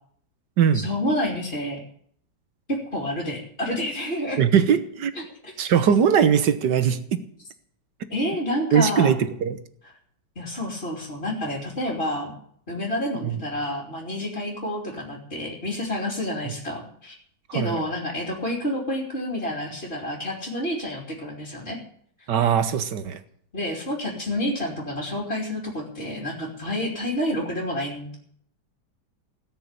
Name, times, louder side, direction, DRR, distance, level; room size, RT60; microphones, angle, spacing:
voice 1, 0.7-1.8 2.7-4.4 5.1-5.5 8.1-9.1 9.8-9.9 10.3-12.3 12.7-17.1 17.5-21.8 22.2-22.3 23.5-28.1, left 1 dB, 35° left, -3 dB, 3.2 m, -29 dB
voice 2, 4.4-5.1 5.6-7.2 8.7-9.6 13.2-13.4 16.4-16.5 17.5-17.9 22.3-23.2, right 8 dB, 90° right, 11 dB, 1.8 m, -21 dB
17.5 x 6.6 x 9.7 m, 0.64 s
omnidirectional pair, 1.8 m